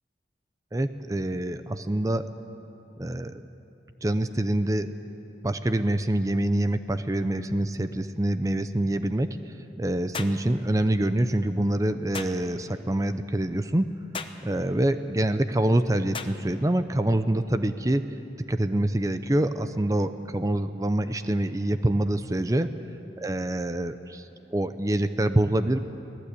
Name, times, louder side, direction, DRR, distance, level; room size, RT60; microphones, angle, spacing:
voice 1, 0.7-2.3 3.0-3.3 4.0-4.9 5.4-13.9 14.4-18.0 18.5-22.7 23.2-25.8, right 1 dB, 20° right, 10 dB, 0.6 m, -26 dB
sound 1, 10.1-10.4 12.1-12.4 14.1-14.4 16.1-16.4, left 5 dB, 30° left, 0.8 m, -35 dB
24.0 x 17.0 x 8.4 m, 3.0 s
head